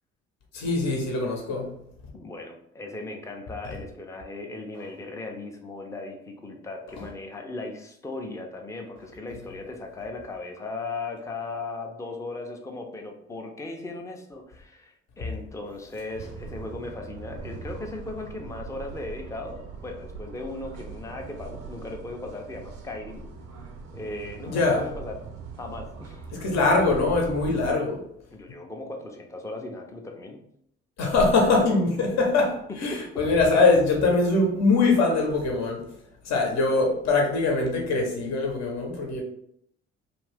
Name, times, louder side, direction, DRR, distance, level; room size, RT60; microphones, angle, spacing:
voice 1, 0.5-1.7 24.4-24.8 26.3-28.0 31.0-35.8 36.2-39.2, left 3 dB, 55° left, 1 dB, 0.9 m, -22 dB
voice 2, 2.1-23.2 23.9-25.2 25.6-26.2 28.3-30.4 32.9-33.2, left 2 dB, 10° left, 2 dB, 0.6 m, -37 dB
sound 1, 16.1-27.7, right 4 dB, 75° right, 0.7 m, -41 dB
2.6 x 2.5 x 3.4 m, 0.71 s
hypercardioid pair, 60°, 32 cm